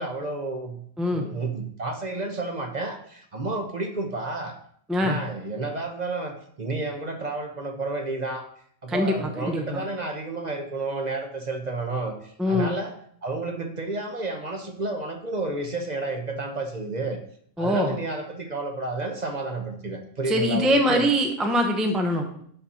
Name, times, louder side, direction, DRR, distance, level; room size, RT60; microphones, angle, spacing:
voice 1, 0.0-0.8 1.1-4.6 4.9-8.5 8.8-12.9 13.2-17.2 17.6-21.1, right 2 dB, 40° right, 4 dB, 0.9 m, -31 dB
voice 2, 8.9-9.8 12.4-12.7 17.6-18.0 20.3-22.4, equal, ahead, 4 dB, 0.6 m, -23 dB
11.0 x 4.2 x 4.2 m, 0.64 s
omnidirectional pair, 1.3 m